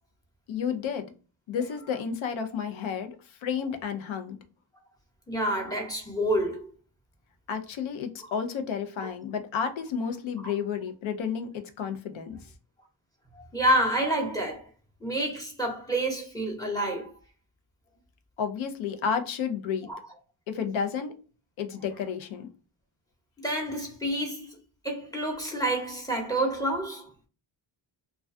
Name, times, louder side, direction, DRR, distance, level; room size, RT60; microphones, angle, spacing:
voice 1, 0.5-1.1 1.5-4.4 7.5-12.4 18.4-19.9 20.5-21.1 21.6-22.5, left 7 dB, 75° left, 0.6 m, -31 dB
voice 2, 5.3-6.7 9.0-9.1 10.4-10.5 13.4-14.6 15.0-17.1 19.9-20.0 23.4-24.5 24.8-27.1, right 1 dB, 10° left, 0.8 m, -28 dB
2.3 x 2.2 x 2.5 m
cardioid pair, 105°, 48 cm